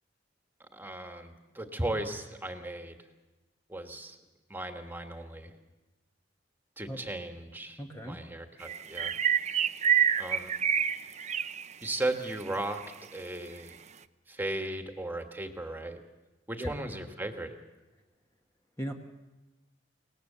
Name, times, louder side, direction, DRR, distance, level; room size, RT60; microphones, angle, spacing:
voice 1, 0.7-3.0 3.7-4.2 4.5-5.5 6.8-9.2 10.2-10.5 11.8-13.8 14.3-16.0 16.5-17.6, right 1 dB, 10° right, 5 dB, 1.7 m, -36 dB
voice 2, 7.8-8.2 16.6-16.8 18.8-18.9, equal, 15° left, 2 dB, 1.2 m, -37 dB
sound 1, 8.6-12.0 12.3-12.4 12.8-12.9, right 8 dB, 40° right, 0.6 m, -27 dB
23.5 x 19.0 x 6.8 m, 1.1 s
head